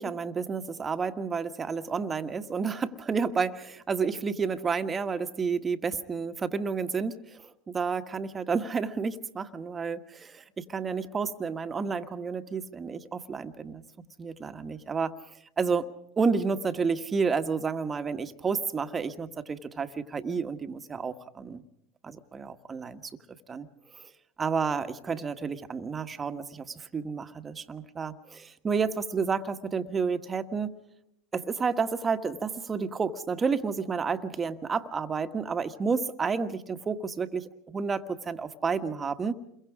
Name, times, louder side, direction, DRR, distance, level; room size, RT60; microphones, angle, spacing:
voice 1, 0.0-15.2 15.6-15.9 16.2-21.6 22.0-23.1 23.5-23.7 23.9-24.1 24.4-30.8 31.3-39.3, right 5 dB, 25° right, 8 dB, 1.5 m, -30 dB
28.5 x 22.5 x 5.0 m, 0.75 s
hypercardioid pair, 85°, 0 cm